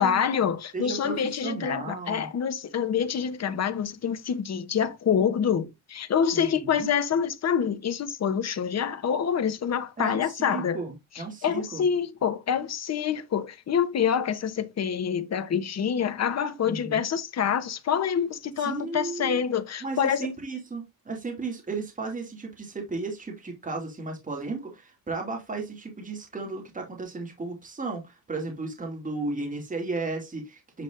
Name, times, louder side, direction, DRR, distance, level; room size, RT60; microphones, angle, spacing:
voice 1, 0.0-10.8 11.4-20.3, left 7 dB, 40° left, 1.0 m, -26 dB
voice 2, 0.7-1.1 1.4-2.3 6.3-6.9 10.0-11.8 16.6-17.0 18.6-19.5 19.8-30.8, right 3 dB, 20° right, 2.4 m, -34 dB
8.6 x 6.1 x 2.5 m
wide cardioid pair, 180°, 38 cm